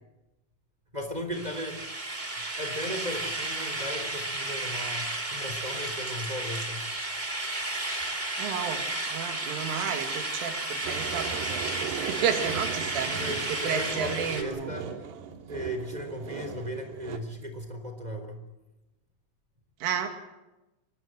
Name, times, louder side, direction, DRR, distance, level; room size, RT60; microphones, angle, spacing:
voice 1, 0.9-1.8 2.6-6.9 13.2-15.0 15.5-18.5, equal, 10° right, 5 dB, 2.8 m, -36 dB
sound 1, 1.3-14.4, right 2 dB, 35° right, 0.7 m, -33 dB
voice 2, 8.4-13.1 13.5-14.7 19.8-20.1, right 7 dB, 85° right, 5 dB, 4.8 m, -32 dB
sound 2, 10.8-17.2, right 8 dB, 65° right, 3.4 m, -38 dB
24.5 x 21.5 x 7.8 m, 1.0 s
omnidirectional pair, 5.6 m